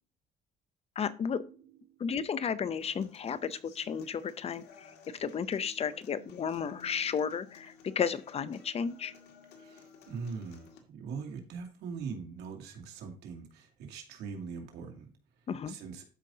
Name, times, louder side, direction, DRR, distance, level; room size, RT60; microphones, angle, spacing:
voice 1, 1.0-1.4 2.0-4.9 5.2-9.1 15.5-15.8, left 7 dB, 35° left, 15 dB, 0.6 m, -33 dB
Human voice / Acoustic guitar, 2.8-10.8, left 6 dB, 75° left, 1.9 m, -56 dB
voice 2, 9.6-15.1 15.7-16.0, right 5 dB, 80° right, 2 dB, 2.4 m, -42 dB
13.0 x 5.3 x 2.7 m, 0.38 s
cardioid pair, 110°, 17 cm